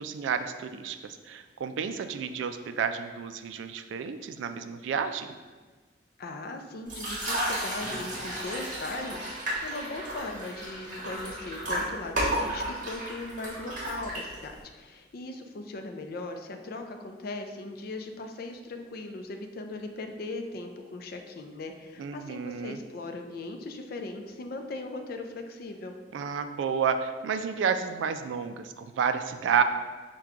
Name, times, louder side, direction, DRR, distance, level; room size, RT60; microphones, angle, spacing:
voice 1, 0.0-5.3 22.0-22.8 26.1-29.6, right 6 dB, 80° right, 9 dB, 0.3 m, -30 dB
voice 2, 6.2-25.9, left 2 dB, 55° left, 5 dB, 0.4 m, -39 dB
sound 1, 6.9-14.6, right 1 dB, 45° right, 1.4 m, -33 dB
5.9 x 2.2 x 3.6 m, 1.4 s
head